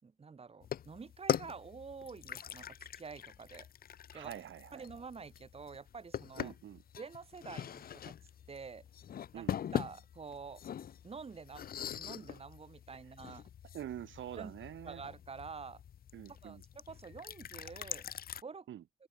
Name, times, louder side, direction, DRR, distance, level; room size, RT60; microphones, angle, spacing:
voice 1, 0.0-3.7 4.1-6.5 7.0-8.2 8.5-8.8 9.3-10.6 11.0-13.5 14.4-14.5 14.8-15.8 16.3-18.1 18.4-18.7, right 5 dB, 30° right, 4.8 m, -48 dB
sound 1, 0.6-18.4, left 9 dB, 50° left, 0.7 m, -42 dB
voice 2, 4.1-4.9 6.4-6.8 9.3-9.6 13.7-15.0 16.1-16.6 18.7-18.8, right 11 dB, 75° right, 2.0 m, -45 dB
open air
wide cardioid pair, 150°, 20 cm